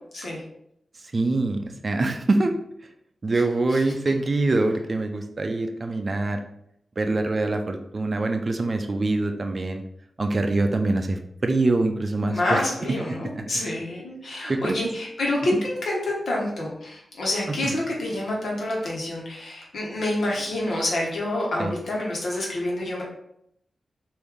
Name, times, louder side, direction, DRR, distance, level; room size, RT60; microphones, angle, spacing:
voice 1, 1.1-2.6 3.2-6.4 7.0-9.8 10.2-13.6 14.5-14.9 17.6-17.7 21.6-21.7, right 2 dB, 40° right, 5 dB, 0.4 m, -24 dB
voice 2, 12.3-23.0, left 1 dB, 70° left, -3 dB, 1.2 m, -27 dB
3.2 x 2.6 x 3.5 m, 0.74 s
wide cardioid pair, 120°, 0 cm